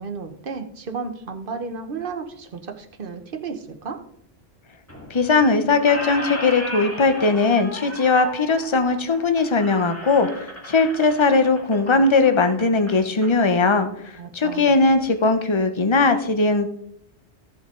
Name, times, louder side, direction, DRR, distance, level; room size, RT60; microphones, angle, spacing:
voice 1, 0.0-4.0 14.2-14.7, right 5 dB, 50° right, 6 dB, 1.2 m, -33 dB
Squeak, 4.9-5.4 5.7-13.3, equal, 10° left, 2.2 m, -35 dB
voice 2, 5.1-10.3 10.7-13.9 14.3-16.7, left 3 dB, 30° left, 9 dB, 0.8 m, -19 dB
14.5 x 7.2 x 3.8 m, 0.72 s
omnidirectional pair, 1.2 m